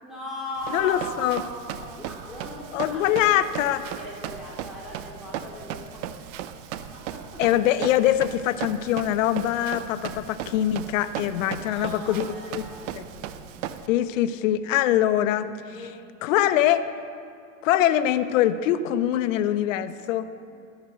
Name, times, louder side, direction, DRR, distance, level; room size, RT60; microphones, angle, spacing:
voice 1, 0.0-6.4 6.7-7.4 9.5-9.9 11.3-13.5 15.7-16.0, left 1 dB, ahead, -7 dB, 3.0 m, -39 dB
Run, 0.6-13.9, right 10 dB, 70° right, 0.7 m, -37 dB
voice 2, 0.7-1.4 2.7-3.8 7.4-12.7 12.9-13.0 13.9-15.9 16.2-16.8 17.6-20.3, left 12 dB, 80° left, 12 dB, 0.7 m, -23 dB
15.0 x 5.3 x 7.6 m, 2.5 s
hypercardioid pair, 90°, 38 cm